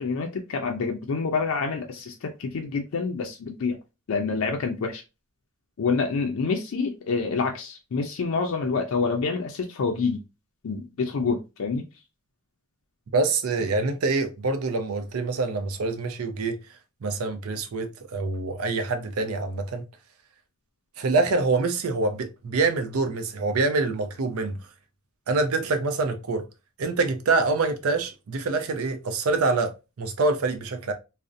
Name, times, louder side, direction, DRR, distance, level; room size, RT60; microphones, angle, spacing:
voice 1, 0.0-3.8 4.1-5.0 5.8-10.2 10.6-11.8, left 4 dB, 80° left, 0.4 m, -27 dB
voice 2, 13.1-16.6 17.0-19.8 21.0-24.6 25.3-26.5 26.8-29.7 30.0-30.9, right 3 dB, 90° right, 0.5 m, -25 dB
2.5 x 2.0 x 2.5 m
head